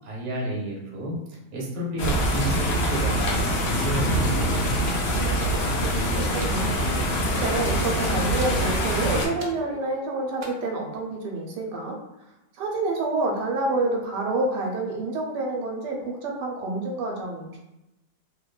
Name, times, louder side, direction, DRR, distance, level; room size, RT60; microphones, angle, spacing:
voice 1, 0.0-4.4, right 1 dB, 45° right, -3 dB, 0.7 m, -31 dB
sound 1, 2.0-9.3, equal, 80° left, 1.3 m, -24 dB
sound 2, 4.4-4.9 5.4-6.0 6.4-6.6 7.4-7.6 8.4-8.6 9.4-9.6 10.4-10.5, right 4 dB, 70° right, 1.0 m, -37 dB
voice 2, 5.1-5.6 5.9-6.8 7.1-12.0 12.6-17.6, right 2 dB, 90° right, 0 dB, 1.2 m, -28 dB
3.1 x 2.1 x 2.3 m, 0.93 s
omnidirectional pair, 1.8 m